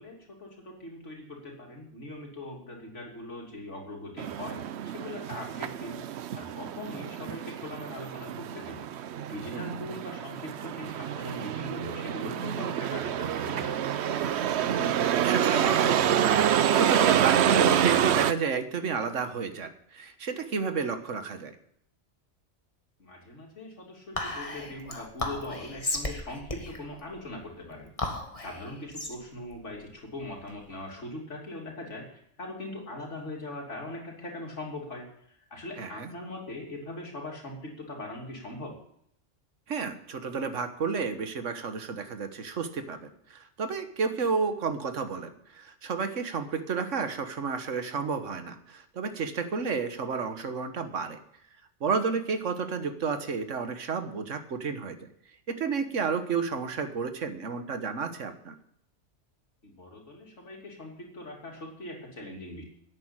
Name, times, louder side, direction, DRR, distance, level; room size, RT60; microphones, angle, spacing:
voice 1, 0.0-13.9 23.0-27.9 28.4-38.8 59.6-62.6, left 1 dB, 75° left, -1 dB, 3.3 m, -41 dB
sound 1, 4.2-18.3, right 9 dB, 65° right, 0.9 m, -27 dB
voice 2, 14.6-21.5 35.8-36.1 39.7-51.2 51.8-55.0 55.5-58.5, right 5 dB, 90° right, 9 dB, 1.6 m, -31 dB
Whispering, 24.2-30.8, left 2 dB, 30° left, 1.7 m, -36 dB
11.0 x 8.5 x 8.9 m, 0.70 s
omnidirectional pair, 1.2 m